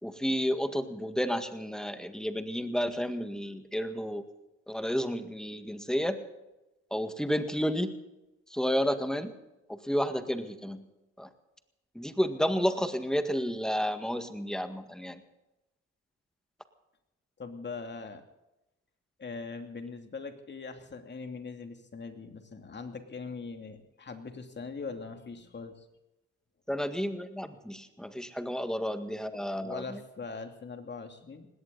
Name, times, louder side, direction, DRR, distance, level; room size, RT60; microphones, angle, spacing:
voice 1, 0.0-4.3 4.7-6.2 6.9-8.0 8.5-9.3 9.7-10.9 11.2-11.3 12.0-15.2 26.7-30.0, equal, ahead, 8 dB, 1.8 m, -31 dB
voice 2, 17.4-18.2 19.2-25.8 29.5-31.5, left 4 dB, 35° left, 6 dB, 2.8 m, -41 dB
20.0 x 17.0 x 4.1 m, 0.96 s
cardioid pair, 90°, 30 cm